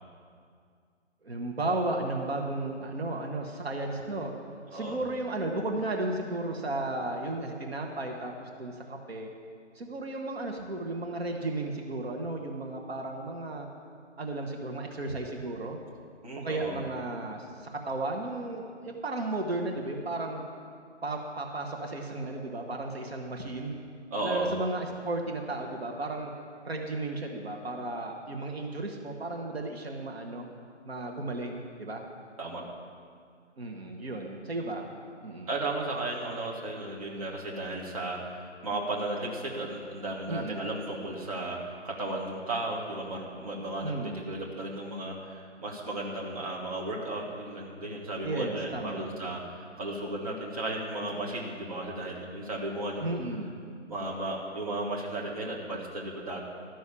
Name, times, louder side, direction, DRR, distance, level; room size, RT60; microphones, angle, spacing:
voice 1, 1.2-4.3 4.7-9.3 9.7-13.7 14.2-15.8 16.4-20.4 21.0-23.8 24.2-26.3 26.6-30.5 30.8-32.0 33.6-34.8 35.2-35.5 40.3-40.7 43.8-44.3 48.2-49.1 53.0-53.6, right 2 dB, 55° right, 1 dB, 1.5 m, -34 dB
voice 2, 16.2-16.8 24.1-24.5 32.4-32.6 35.5-53.2 53.9-56.4, right 2 dB, 30° right, -3 dB, 1.5 m, -35 dB
13.0 x 6.3 x 8.5 m, 2.2 s
hypercardioid pair, 170°, 36 cm